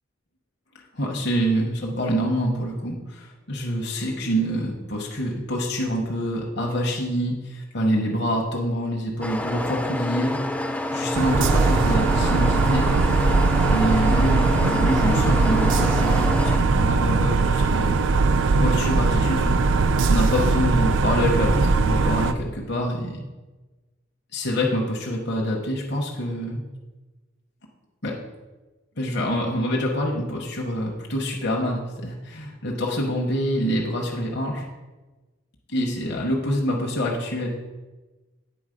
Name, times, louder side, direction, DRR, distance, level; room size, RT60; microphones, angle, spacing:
voice 1, 0.9-10.4 10.9-12.9 13.7-18.0 18.6-19.5 20.1-23.2 24.3-26.6 28.0-28.2 29.0-34.7 35.7-37.5, equal, 60° left, -1 dB, 0.9 m, -26 dB
sound 1, 9.2-16.6, left 1 dB, 5° left, 0.3 m, -28 dB
sound 2, 11.1-22.3, right 4 dB, 65° right, 0.4 m, -20 dB
8.7 x 3.9 x 5.0 m, 1.2 s
head